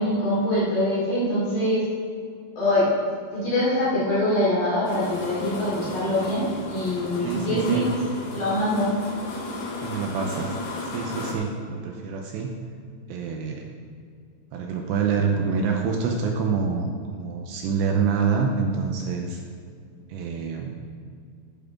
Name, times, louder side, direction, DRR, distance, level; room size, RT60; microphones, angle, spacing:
voice 1, 0.0-1.8 2.6-2.9 3.3-7.9 8.3-8.9, left 1 dB, 45° left, -8 dB, 4.5 m, -24 dB
sound 1, 4.9-11.3, left 2 dB, 65° left, 3.3 m, -34 dB
voice 2, 7.2-7.9 9.8-10.5 10.9-12.5 13.1-13.7 14.5-19.4 20.1-21.0, right 5 dB, 80° right, 2 dB, 2.6 m, -26 dB
12.0 x 11.5 x 3.7 m, 2.3 s
omnidirectional pair, 5.7 m